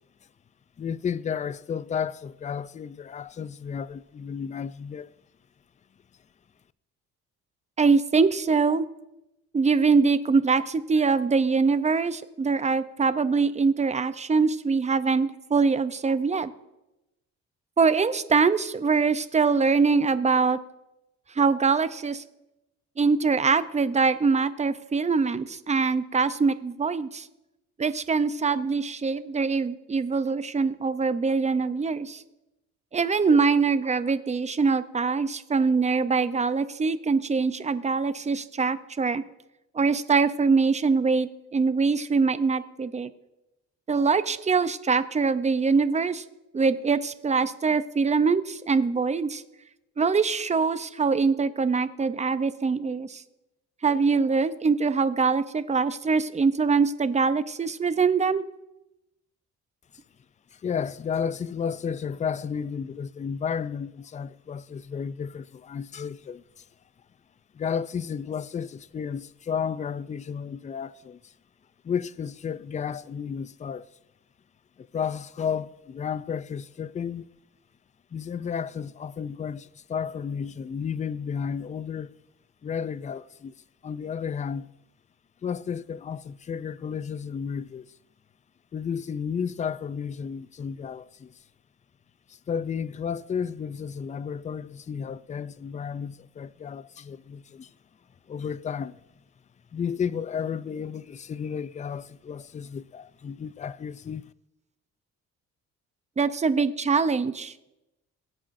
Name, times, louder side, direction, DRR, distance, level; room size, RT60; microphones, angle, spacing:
voice 1, 0.8-5.1 60.5-66.4 67.5-71.3 71.8-73.9 74.8-77.3 78.1-82.1 82.6-83.5 83.8-84.7 85.4-87.9 88.7-91.3 92.3-97.7 98.3-99.0 99.7-104.2, left 7 dB, 25° left, 0.4 m, -32 dB
voice 2, 7.8-8.9 9.5-16.5 17.8-20.6 21.4-22.2 23.0-27.3 27.8-32.2 32.9-39.2 39.7-43.1 43.9-46.2 46.5-49.4 50.0-53.2 53.8-58.4 106.2-107.5, right 4 dB, 25° right, 0.6 m, -23 dB
21.5 x 8.5 x 2.6 m
cardioid pair, 90°, 30 cm